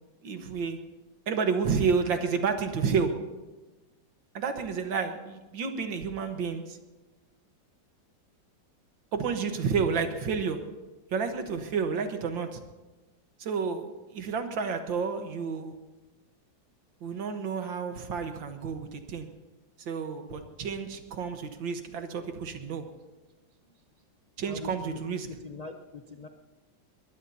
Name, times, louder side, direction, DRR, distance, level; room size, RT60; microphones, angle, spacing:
voice 1, 0.2-0.8 1.3-3.1 4.3-6.8 9.1-10.6 11.1-12.6 13.4-15.7 17.0-19.3 19.8-22.9 24.4-25.3, right 5 dB, 70° right, 6 dB, 2.0 m, -30 dB
voice 2, 24.4-26.3, left 3 dB, 60° left, 3 dB, 0.4 m, -43 dB
21.5 x 21.0 x 2.8 m, 1.2 s
omnidirectional pair, 2.1 m